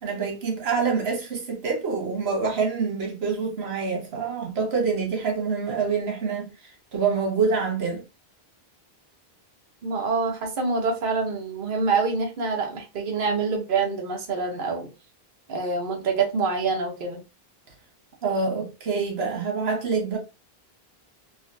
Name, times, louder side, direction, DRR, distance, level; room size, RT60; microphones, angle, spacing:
voice 1, 0.0-6.5 6.9-8.0 18.2-20.2, right 5 dB, 90° right, 1.2 m, -26 dB
voice 2, 9.8-14.9 15.5-17.2, right 4 dB, 60° right, 0.9 m, -26 dB
3.7 x 2.1 x 2.5 m
omnidirectional pair, 1.0 m